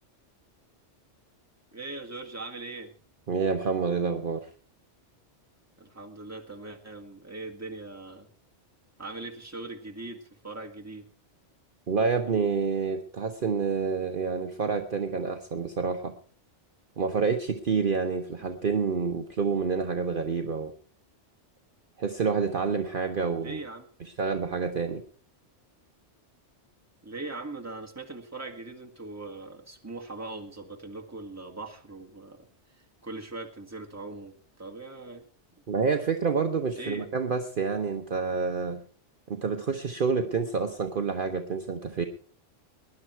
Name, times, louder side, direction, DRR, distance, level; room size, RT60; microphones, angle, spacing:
voice 1, 1.7-2.9 5.8-8.3 9.0-11.1 18.4-18.5 23.4-23.9 27.0-32.5 33.0-35.3 36.8-37.1, right 2 dB, 15° right, 1 dB, 1.9 m, -40 dB
voice 2, 3.3-4.5 11.9-16.1 17.0-20.7 22.0-23.6 24.0-25.0 35.7-38.8 39.3-42.1, right 5 dB, 50° right, 6 dB, 1.0 m, -28 dB
19.5 x 11.0 x 4.5 m, 0.43 s
omnidirectional pair, 1.2 m